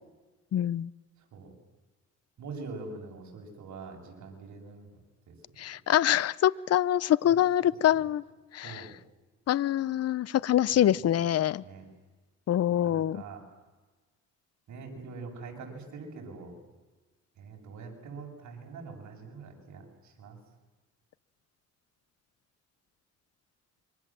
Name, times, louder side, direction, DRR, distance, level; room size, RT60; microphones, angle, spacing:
voice 1, 0.5-0.9 5.6-8.2 8.5-8.9 9.5-11.6 12.5-13.2, left 11 dB, 55° left, 0.7 m, -25 dB
voice 2, 2.4-4.9 5.3-5.4 7.2-7.3 8.6-8.9 11.6-11.9 12.7-13.4 14.7-16.5 17.4-20.4, right 4 dB, 70° right, 7.8 m, -44 dB
27.5 x 24.5 x 7.6 m
cardioid pair, 90°, 30 cm